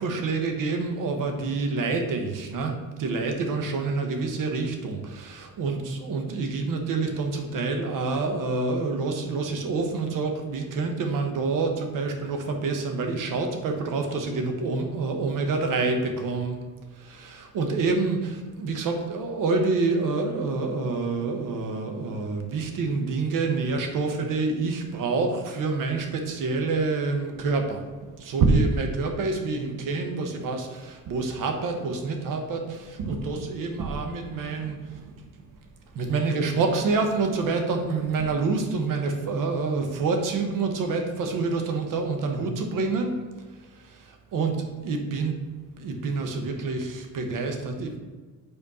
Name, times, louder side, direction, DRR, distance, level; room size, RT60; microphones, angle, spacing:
voice 1, 0.0-16.6 16.9-35.1 35.9-43.1 43.6-45.4 45.8-48.0, right 3 dB, 60° right, 4 dB, 1.1 m, -27 dB
5.3 x 4.3 x 4.2 m, 1.4 s
supercardioid pair, 85°, 37 cm